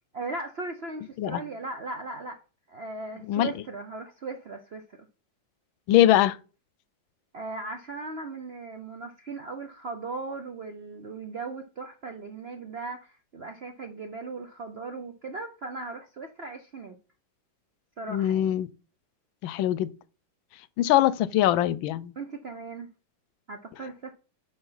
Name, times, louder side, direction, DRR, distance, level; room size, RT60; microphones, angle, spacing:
voice 1, 0.1-2.4 2.7-5.1 7.3-17.0 18.0-18.6 22.2-22.9 23.5-24.1, right 3 dB, 60° right, 0.6 m, -38 dB
voice 2, 5.9-6.4 18.1-18.7 19.4-19.9 20.8-22.1, left 13 dB, 90° left, 1.4 m, -22 dB
10.0 x 3.5 x 5.7 m
omnidirectional pair, 2.1 m